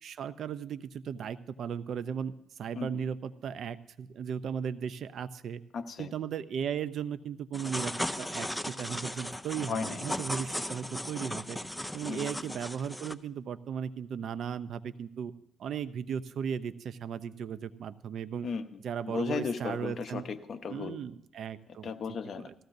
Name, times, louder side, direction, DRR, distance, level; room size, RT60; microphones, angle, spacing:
voice 1, 0.0-2.3 2.6-5.6 6.0-11.6 11.9-15.3 15.6-18.5 18.8-20.2 20.7-21.9 22.4-22.5, right 7 dB, 65° right, 13 dB, 0.6 m, -36 dB
voice 2, 5.7-6.1 9.7-10.0 12.1-12.4 18.4-21.0 21.8-22.5, left 5 dB, 55° left, 8 dB, 0.9 m, -36 dB
sound 1, 7.5-13.1, left 1 dB, 5° left, 0.5 m, -36 dB
18.5 x 14.5 x 2.7 m, 0.80 s
cardioid pair, 90°, 0 cm